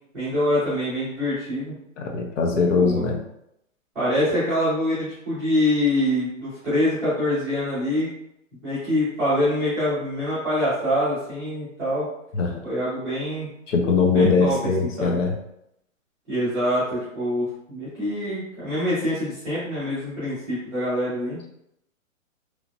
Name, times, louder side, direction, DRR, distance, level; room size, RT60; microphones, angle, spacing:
voice 1, 0.1-1.7 2.7-3.0 3.9-8.1 8.6-12.0 12.6-13.5 14.1-14.5 14.8-15.2 16.3-21.4, left 1 dB, ahead, -20 dB, 0.5 m, -25 dB
voice 2, 2.0-3.2 12.3-12.6 13.7-15.4, left 4 dB, 65° left, 2 dB, 0.6 m, -21 dB
3.1 x 2.1 x 2.5 m, 0.78 s
hypercardioid pair, 165°, 40 cm